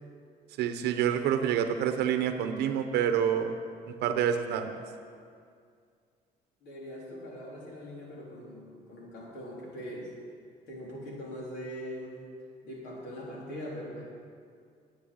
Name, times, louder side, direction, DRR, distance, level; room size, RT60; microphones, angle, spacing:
voice 1, 0.6-3.5 3.9-4.7, right 9 dB, 80° right, 7 dB, 0.8 m, -27 dB
voice 2, 6.6-10.1 10.7-12.2 12.6-14.0, equal, 75° left, -4 dB, 3.7 m, -41 dB
10.0 x 8.1 x 8.5 m, 2.2 s
cardioid pair, 110°, 17 cm